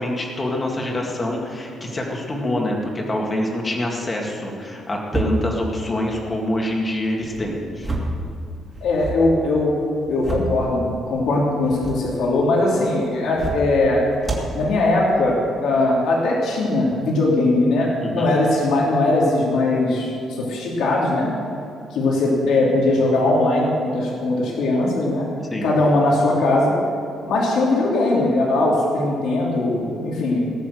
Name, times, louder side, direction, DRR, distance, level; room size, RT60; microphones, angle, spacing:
voice 1, 0.0-7.9 18.0-18.3 25.5-25.7, left 1 dB, 20° left, 0 dB, 2.1 m, -25 dB
sound 1, 5.1-5.6 7.2-8.2 8.6-9.2 9.9-10.6 11.6-12.1 13.2-13.7 14.2-14.5, right 2 dB, 15° right, 2.5 m, -28 dB
voice 2, 8.8-9.8 10.1-14.0 14.5-21.3 21.9-25.3 25.6-26.7 27.2-30.5, left 2 dB, 75° left, -3 dB, 3.0 m, -20 dB
19.0 x 6.8 x 7.8 m, 2.6 s
cardioid pair, 170°, 0 cm